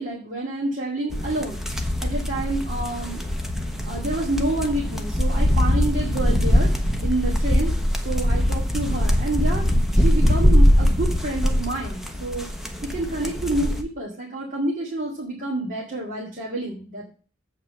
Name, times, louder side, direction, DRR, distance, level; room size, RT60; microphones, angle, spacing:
voice 1, 0.0-3.2 3.9-7.7 8.0-12.5 12.8-17.1, right 2 dB, 40° right, -4 dB, 2.2 m, -28 dB
sound 1, 1.1-13.8, equal, ahead, 1.2 m, -22 dB
8.1 x 5.6 x 7.5 m, 0.39 s
head